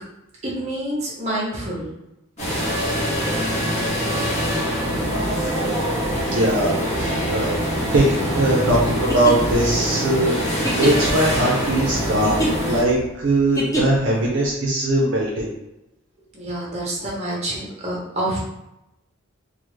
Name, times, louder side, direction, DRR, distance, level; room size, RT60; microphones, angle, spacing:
voice 1, 0.4-1.9 16.3-18.4, right 1 dB, 30° right, -4 dB, 0.9 m, -27 dB
sound 1, 2.4-12.8, equal, 30° left, 0.8 m, -24 dB
voice 2, 6.3-7.6 7.9-15.5, right 1 dB, 55° right, -4 dB, 0.5 m, -21 dB
sound 2, 9.1-14.2, right 1 dB, 15° left, 0.4 m, -27 dB
3.4 x 2.0 x 3.0 m, 0.89 s
head